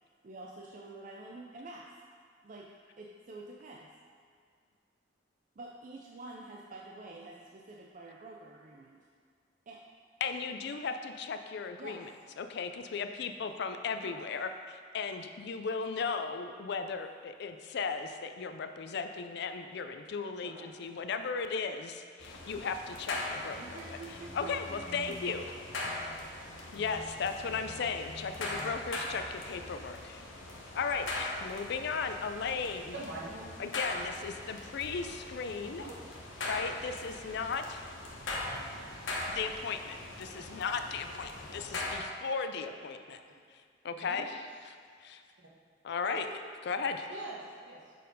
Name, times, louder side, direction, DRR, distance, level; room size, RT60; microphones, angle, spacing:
voice 1, 0.2-1.9 2.4-3.9 5.6-9.1 9.7-9.8 11.7-12.0 14.0-14.3 20.4-20.7 23.5-25.4 27.5-27.6 29.5-29.7, right 2 dB, 45° right, -1 dB, 0.5 m, -48 dB
voice 2, 10.2-12.1 12.4-23.8 24.3-25.4 26.7-30.2 30.7-32.9 33.6-35.8 36.5-38.0 39.3-43.2 43.8-45.2 45.8-46.3 46.7-47.1, left 5 dB, 60° left, 7 dB, 0.4 m, -36 dB
sound 1, 22.2-42.0, left 2 dB, 85° left, 1.0 m, -41 dB
voice 3, 32.9-33.5 35.6-35.9 36.4-36.5 42.7-42.8 43.9-44.3 46.0-46.3 47.1-47.9, right 2 dB, 70° right, -4 dB, 1.4 m, -43 dB
6.4 x 4.4 x 5.2 m, 2.1 s
head